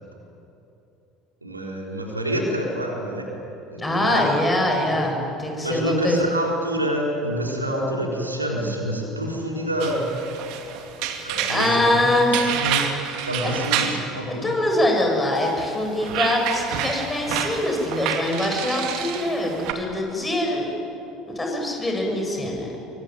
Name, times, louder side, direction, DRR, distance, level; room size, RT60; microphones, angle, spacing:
voice 1, 1.4-3.3 3.7-4.3 5.6-10.1 11.2-12.9 13.3-14.6, equal, 85° right, 0 dB, 3.9 m, -27 dB
voice 2, 3.8-6.2 11.5-12.4 13.4-13.5 14.4-20.7 21.3-22.7, left 1 dB, 15° left, 1 dB, 7.8 m, -23 dB
sound 1, 9.8-14.1 15.4-19.7, right 8 dB, 55° right, 2.6 m, -29 dB
26.0 x 24.0 x 9.6 m, 2.8 s
figure-of-eight pair, 65°, 0 cm